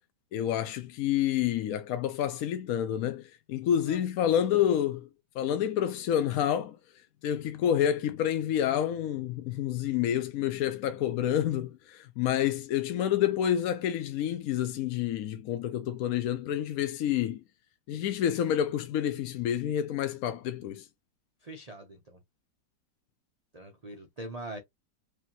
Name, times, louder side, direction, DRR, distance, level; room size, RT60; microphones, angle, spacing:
voice 1, 0.3-5.1 5.4-6.8 7.2-17.4 17.9-20.8, left 10 dB, 70° left, 0.9 m, -28 dB
voice 2, 21.4-22.2 23.5-24.6, right 1 dB, 45° right, 0.5 m, -43 dB
4.9 x 2.8 x 2.8 m
omnidirectional pair, 1.9 m